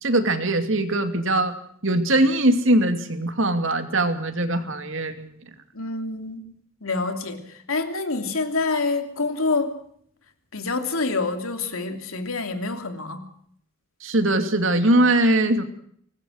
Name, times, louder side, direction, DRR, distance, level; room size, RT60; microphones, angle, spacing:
voice 1, 0.0-1.5 1.8-5.4 14.0-15.6, right 1 dB, 65° right, 7 dB, 2.6 m, -21 dB
voice 2, 5.7-6.5 6.8-9.8 10.5-13.2, left 3 dB, 75° left, 6 dB, 3.0 m, -27 dB
24.5 x 19.5 x 6.5 m, 0.66 s
head